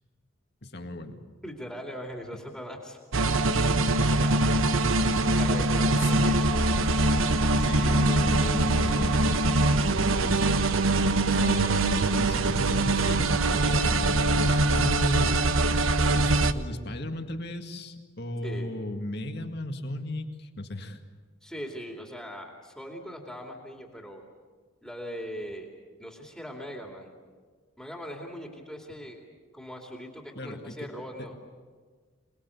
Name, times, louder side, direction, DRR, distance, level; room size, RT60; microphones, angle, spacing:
voice 1, 0.6-1.2 4.7-4.8 6.0-6.3 7.5-10.6 11.3-13.3 13.6-15.4 16.1-21.0 30.4-30.9 31.2-31.3, left 1 dB, 50° left, 5 dB, 2.1 m, -36 dB
voice 2, 1.4-3.0 4.1-4.5 5.1-6.9 18.4-18.7 21.4-24.2 24.8-25.7 26.0-27.1 27.8-29.2 29.5-31.4, equal, ahead, 0 dB, 2.6 m, -40 dB
sound 1, 3.1-16.5, right 2 dB, 80° right, 1.0 m, -23 dB
27.0 x 20.5 x 8.4 m, 1.5 s
head